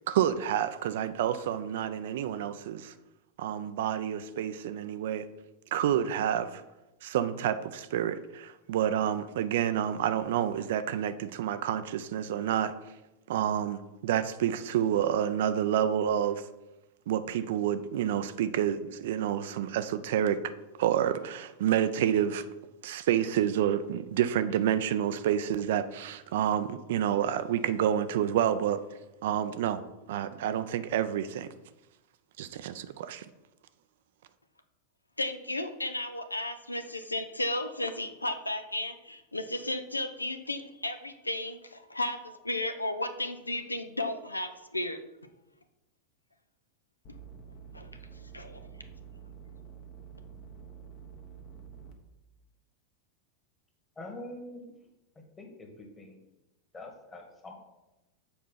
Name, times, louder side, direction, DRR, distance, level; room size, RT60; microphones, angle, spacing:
voice 1, 0.1-2.9 3.4-5.2 5.7-6.6 7.0-12.7 13.3-16.4 17.1-20.4 20.8-22.4 22.8-28.8 29.2-29.8 30.1-31.5 32.4-33.3, right 10 dB, 55° right, 12 dB, 0.4 m, -29 dB
voice 2, 35.2-42.2 42.4-45.0 47.7-47.9 48.3-48.6, left 1 dB, 85° left, 9 dB, 0.6 m, -34 dB
Behringer neutron static, 47.0-51.9, right 7 dB, 40° left, 1.1 m, -48 dB
voice 3, 54.0-54.7 55.2-56.2 56.7-57.5, left 1 dB, 15° left, 2 dB, 1.6 m, -45 dB
7.0 x 4.6 x 5.7 m, 0.99 s
figure-of-eight pair, 90°, 0 cm